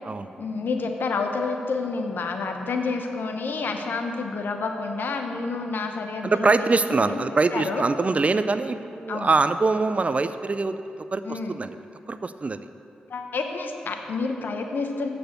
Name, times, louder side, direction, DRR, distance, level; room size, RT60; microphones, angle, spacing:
voice 1, 0.4-6.7 7.0-7.2 7.5-7.8 9.1-9.3 11.2-11.6 13.1-15.1, left 4 dB, 70° left, 5 dB, 0.9 m, -29 dB
voice 2, 6.2-10.8 11.1-11.7 12.1-12.6, right 3 dB, 40° right, 11 dB, 0.4 m, -23 dB
8.2 x 6.0 x 6.7 m, 2.6 s
supercardioid pair, 45°, 3 cm